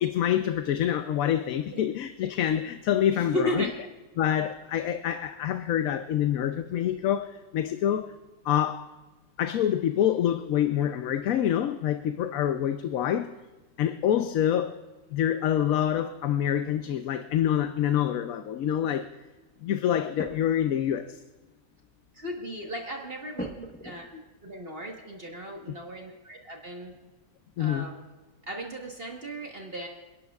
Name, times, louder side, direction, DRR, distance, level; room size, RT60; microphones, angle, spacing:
voice 1, 0.0-3.6 4.2-8.1 8.4-8.9 9.4-13.3 13.8-14.8 15.1-19.0 19.6-21.2 27.6-27.9, left 10 dB, 80° left, 8 dB, 1.1 m, -26 dB
voice 2, 3.1-3.7 22.1-27.0 27.6-28.0 28.4-29.9, equal, 45° right, 0 dB, 1.6 m, -36 dB
sound 1, 20.2-20.7 21.1-21.2 21.5-21.6 22.1-22.3 23.4-24.3 26.4-26.5 26.9-27.5 27.9-28.0, equal, 10° left, 1.0 m, -41 dB
28.0 x 11.5 x 2.4 m, 1.2 s
omnidirectional pair, 1.4 m